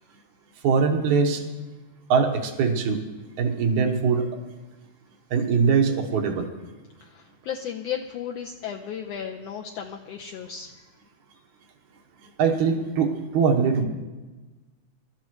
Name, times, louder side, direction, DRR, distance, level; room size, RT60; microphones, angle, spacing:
voice 1, 0.6-1.4 2.1-3.0 3.4-4.3 5.3-6.5 12.4-13.8, right 5 dB, 90° right, 3 dB, 2.7 m, -22 dB
voice 2, 7.0-10.7, left 8 dB, 75° left, 1 dB, 1.6 m, -34 dB
25.0 x 13.0 x 3.2 m, 1.2 s
omnidirectional pair, 3.3 m